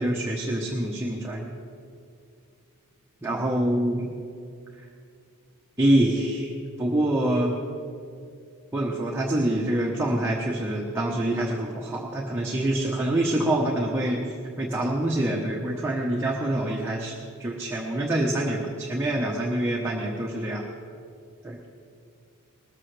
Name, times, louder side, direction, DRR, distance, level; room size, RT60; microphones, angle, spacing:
voice 1, 0.0-1.5 3.2-4.1 5.8-6.5 6.8-7.6 8.7-14.2 14.6-20.6 21.4-21.6, right 1 dB, 10° right, -3 dB, 1.1 m, -26 dB
19.5 x 14.0 x 3.4 m, 2.4 s
head